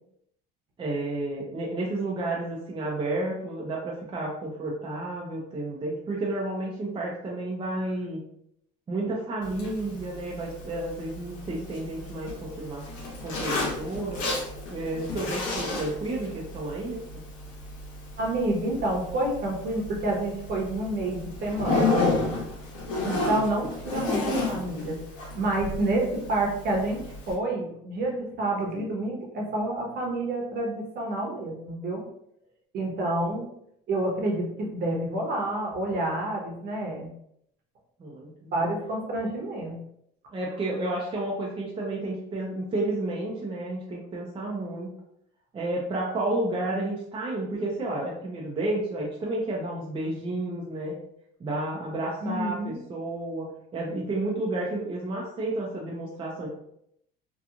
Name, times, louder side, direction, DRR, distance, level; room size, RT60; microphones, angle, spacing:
voice 1, 0.8-8.2 8.9-12.8 13.2-14.2 14.7-17.0 38.0-38.5 40.3-44.9 45.5-51.0 51.4-56.5, right 2 dB, 25° right, -3 dB, 0.6 m, -31 dB
Zipper (clothing), 9.4-27.3, left 3 dB, 85° left, 0.8 m, -32 dB
voice 2, 18.2-22.3 23.0-25.0 25.3-27.0 27.3-32.0 32.7-33.5 33.9-37.1 38.5-39.8 52.2-52.8, right 1 dB, 50° right, -1 dB, 1.0 m, -28 dB
2.9 x 2.3 x 2.4 m, 0.73 s
supercardioid pair, 100°, 21 cm